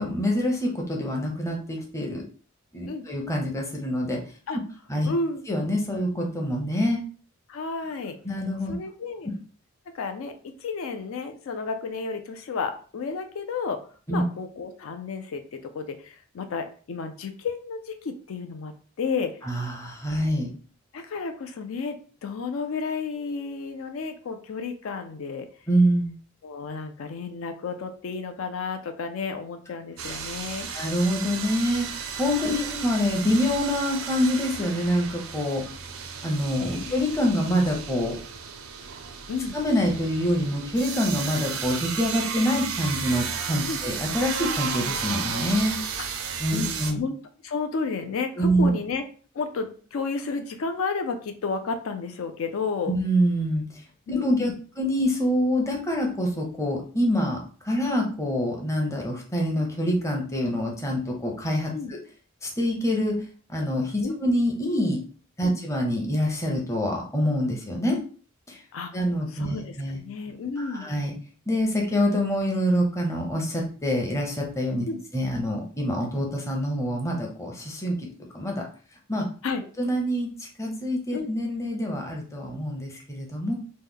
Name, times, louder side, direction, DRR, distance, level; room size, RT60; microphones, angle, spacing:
voice 1, 0.0-2.2 2.7-4.2 4.9-5.1 5.5-7.0 8.2-8.7 14.1-14.2 19.4-20.5 25.7-26.1 30.7-35.6 36.2-38.2 39.5-45.7 46.4-47.0 48.4-48.7 52.9-53.6 54.1-57.4 57.6-62.0 62.4-63.2 63.5-65.0 65.4-68.0 68.5-68.6 68.9-70.0 70.6-71.1 71.5-74.9 75.1-78.0 78.3-78.6 79.1-79.3 79.8-83.6, equal, 15° left, 0 dB, 0.6 m, -26 dB
voice 2, 5.1-5.4 7.5-8.2 8.7-9.3 9.9-13.8 14.1-18.7 19.0-19.3 20.9-25.5 26.4-30.7 32.5-32.8 36.7-36.9 39.3-39.5 43.7-43.8 46.0-47.2 47.4-49.0 49.3-52.9 54.1-54.6 61.7-61.9 64.0-64.2 65.4-65.6 68.7-68.9 69.3-69.7 70.0-70.9 74.9-75.0 79.4-79.6 81.1-81.3, left 4 dB, 75° left, 7 dB, 0.4 m, -32 dB
sound 1, 30.0-46.9, right 6 dB, 90° right, 0.5 m, -33 dB
3.1 x 2.1 x 3.5 m, 0.41 s
head